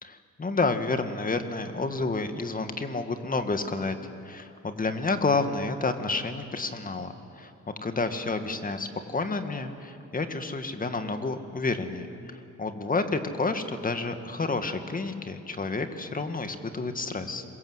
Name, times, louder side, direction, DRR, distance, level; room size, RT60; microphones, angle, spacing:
voice 1, 0.0-4.0 4.2-7.5 7.8-12.1 12.6-17.4, left 3 dB, 30° left, 8 dB, 2.0 m, -30 dB
25.5 x 22.0 x 8.2 m, 2.8 s
cardioid pair, 90°, 30 cm